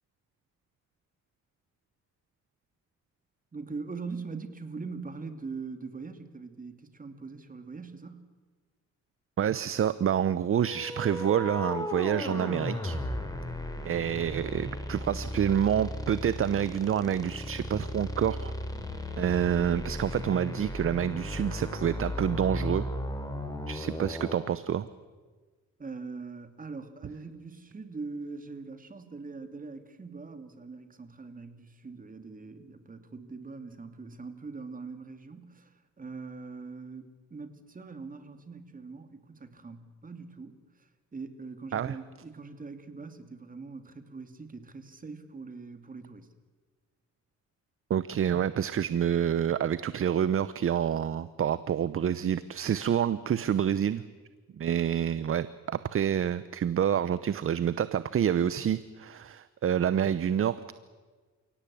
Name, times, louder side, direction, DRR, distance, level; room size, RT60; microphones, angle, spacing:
voice 1, 3.5-8.2 25.8-46.3, right 4 dB, 25° right, 8 dB, 2.5 m, -42 dB
voice 2, 9.4-13.0 13.8-18.5 19.2-22.9 23.7-24.9 41.7-41.9 47.9-54.0 54.6-60.7, right 9 dB, 45° right, 15 dB, 0.8 m, -28 dB
sound 1, 10.6-24.5, left 1 dB, 10° left, 3.8 m, -36 dB
29.0 x 17.5 x 8.6 m, 1.4 s
cardioid pair, 90°, 30 cm